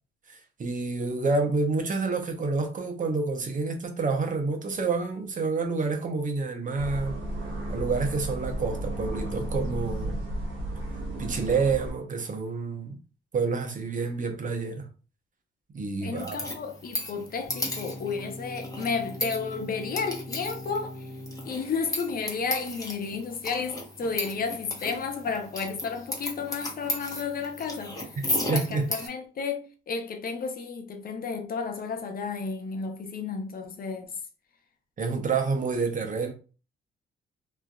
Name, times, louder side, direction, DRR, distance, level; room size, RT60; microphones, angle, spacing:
voice 1, 0.3-7.2 7.7-10.2 11.2-12.9 13.3-14.9 15.7-16.4 28.5-28.9 35.0-36.3, right 4 dB, 40° right, 0.8 m, -28 dB
sound 1, 6.8-11.9, right 1 dB, 80° right, 0.7 m, -33 dB
voice 2, 16.0-21.1 21.4-28.0 28.2-34.0, left 5 dB, 50° left, 0.6 m, -32 dB
sound 2, 16.2-29.1, left 1 dB, 15° left, 1.0 m, -36 dB
sound 3, 17.5-21.5, left 1 dB, ahead, 1.3 m, -42 dB
3.1 x 2.5 x 2.3 m
cardioid pair, 90°, 20 cm